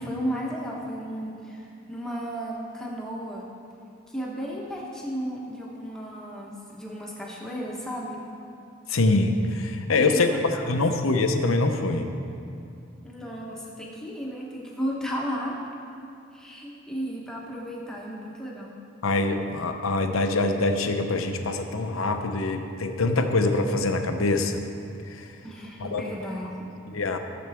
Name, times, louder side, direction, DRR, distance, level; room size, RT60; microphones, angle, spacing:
voice 1, 0.0-3.5 4.1-8.2 10.0-10.7 13.0-15.6 16.3-18.8 25.4-26.7, equal, 5° left, -4 dB, 1.1 m, -34 dB
voice 2, 8.9-10.3 10.7-12.1 19.0-24.6 25.1-25.3 25.8-26.0 26.9-27.2, left 2 dB, 80° left, 6 dB, 0.8 m, -24 dB
15.5 x 7.1 x 3.5 m, 2.6 s
head